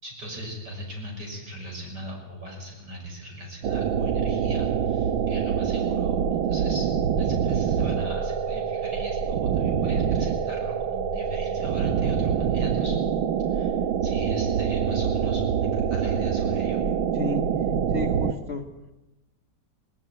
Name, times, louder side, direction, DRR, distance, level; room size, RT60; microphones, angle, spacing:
voice 1, 0.0-6.9 7.2-13.0 13.4-13.8 14.0-16.8, equal, 55° right, 0 dB, 6.9 m, -39 dB
sound 1, 3.6-18.3, right 8 dB, 85° right, 1.8 m, -25 dB
voice 2, 17.1-18.7, left 4 dB, 40° left, 4 dB, 1.0 m, -33 dB
18.5 x 18.5 x 9.2 m, 1.0 s
omnidirectional pair, 2.1 m